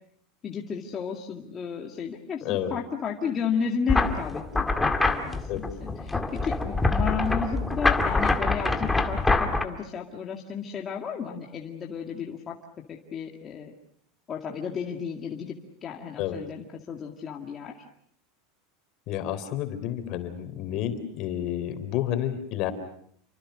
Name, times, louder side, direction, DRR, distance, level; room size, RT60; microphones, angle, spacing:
voice 1, 0.4-12.5 12.9-13.7 14.3-15.5 15.8-17.7, left 6 dB, 25° left, 0 dB, 2.2 m, -33 dB
voice 2, 2.4-2.8 5.5-5.7 16.2-16.4 19.1-22.7, left 11 dB, 45° left, 9 dB, 3.9 m, -30 dB
sound 1, 3.9-9.6, left 3 dB, 5° left, 1.9 m, -25 dB
29.5 x 25.0 x 6.5 m, 0.67 s
supercardioid pair, 160°, 0 cm